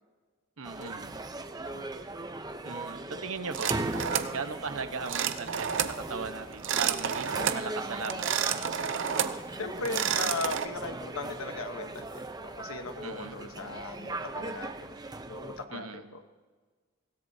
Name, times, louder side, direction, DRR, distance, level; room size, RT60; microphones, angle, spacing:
sound 1, 0.6-15.6, right 2 dB, 20° right, 0.7 m, -38 dB
voice 1, 0.6-1.1 2.6-3.7 4.3-8.7 13.0-13.4 15.7-16.0, right 4 dB, 85° right, 8 dB, 1.1 m, -38 dB
sound 2, 3.5-4.4 5.1-6.0 6.5-7.6 8.0-9.4 9.8-10.7, right 8 dB, 65° right, 0.7 m, -30 dB
voice 2, 9.6-15.0 15.3-16.3, left 3 dB, 85° left, 7 dB, 1.2 m, -38 dB
24.0 x 17.0 x 2.8 m, 1.5 s
head